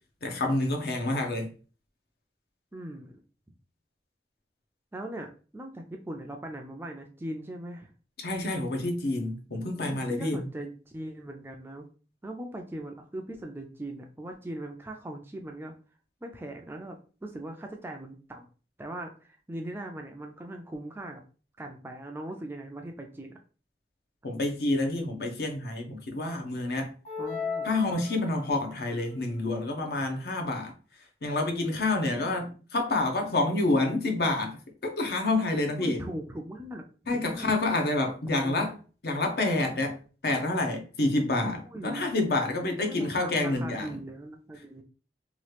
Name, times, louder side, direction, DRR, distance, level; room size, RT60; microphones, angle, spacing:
voice 1, 0.2-1.5 8.2-10.4 24.2-26.9 27.6-30.7 31.2-36.0 37.1-38.7 39.0-44.0, left 2 dB, 60° left, 0.7 m, -28 dB
voice 2, 2.7-3.2 4.9-7.9 9.9-11.9 12.2-15.7 16.2-18.5 18.8-21.2 21.6-23.4 27.2-27.7 32.1-32.5 35.8-37.5 38.4-38.7 41.6-42.0 42.9-44.8, right 1 dB, 15° right, 0.3 m, -40 dB
sound 1, 27.0-28.7, left 5 dB, 40° left, 1.4 m, -35 dB
3.0 x 2.4 x 3.1 m
head